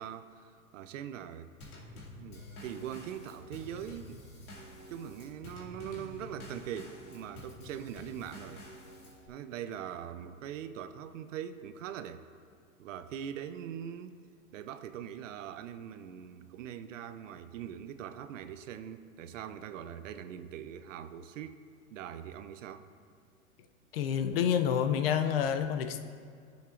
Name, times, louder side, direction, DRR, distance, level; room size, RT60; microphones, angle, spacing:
voice 1, 0.0-1.5 1.9-4.2 4.9-8.6 9.3-12.2 12.8-14.2 14.5-21.6 21.9-22.9, right 9 dB, 65° right, 11 dB, 0.6 m, -42 dB
Drum kit / Snare drum / Bass drum, 1.6-9.3, left 2 dB, 90° left, 2.3 m, -49 dB
voice 2, 23.9-26.0, left 8 dB, 45° left, 8 dB, 0.5 m, -28 dB
18.5 x 7.2 x 2.5 m, 2.1 s
hypercardioid pair, 150°, 42 cm